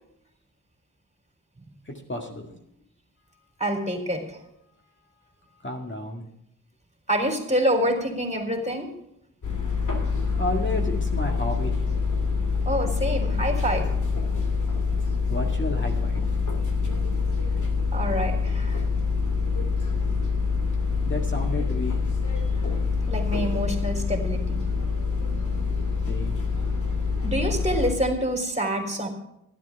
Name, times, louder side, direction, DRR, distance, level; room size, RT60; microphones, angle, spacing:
voice 1, 1.9-2.5 5.6-6.3 10.4-11.7 15.3-16.2 21.1-21.9 26.1-26.5, left 1 dB, 35° left, 1 dB, 2.0 m, -31 dB
voice 2, 3.6-4.4 7.1-8.9 12.7-13.9 17.9-18.8 23.1-24.6 27.2-29.1, equal, 20° right, 4 dB, 3.7 m, -26 dB
sound 1, 9.4-27.9, left 4 dB, 60° left, 3.1 m, -25 dB
12.0 x 10.5 x 5.8 m, 0.78 s
cardioid pair, 50°, 33 cm